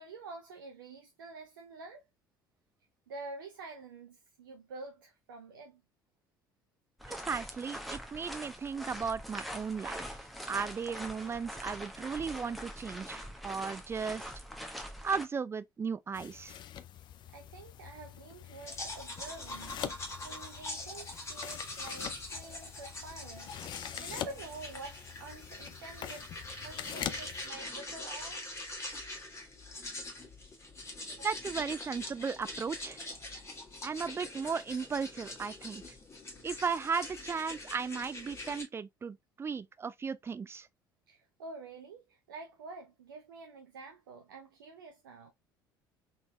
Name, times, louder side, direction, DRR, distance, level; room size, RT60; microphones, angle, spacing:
voice 1, 0.0-2.0 3.1-5.8 17.3-28.4 31.1-31.3 41.1-45.3, right 3 dB, 75° right, 0.6 m, -48 dB
sound 1, 7.0-15.2, equal, ahead, 1.0 m, -43 dB
voice 2, 7.1-10.2 10.5-14.2 15.0-16.6 31.2-33.0 33.8-35.8 36.4-40.7, right 5 dB, 20° right, 0.4 m, -36 dB
sound 2, 16.1-27.5, left 10 dB, 40° left, 0.5 m, -44 dB
sound 3, 18.7-38.6, left 2 dB, 25° left, 1.5 m, -43 dB
3.9 x 3.6 x 2.2 m
figure-of-eight pair, 60°, 11 cm